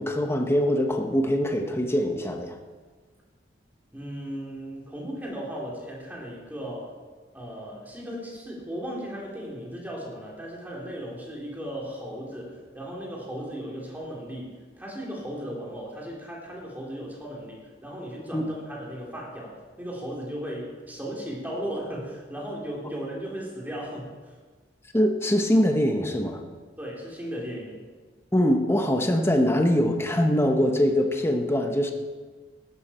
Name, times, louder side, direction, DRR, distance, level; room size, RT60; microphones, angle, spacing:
voice 1, 0.0-2.6 18.3-18.4 24.9-26.4 28.3-31.9, equal, 15° left, 4 dB, 1.1 m, -23 dB
voice 2, 3.9-6.9 7.3-24.3 26.8-27.8, equal, 10° right, -3 dB, 3.5 m, -36 dB
16.0 x 12.0 x 4.4 m, 1.4 s
head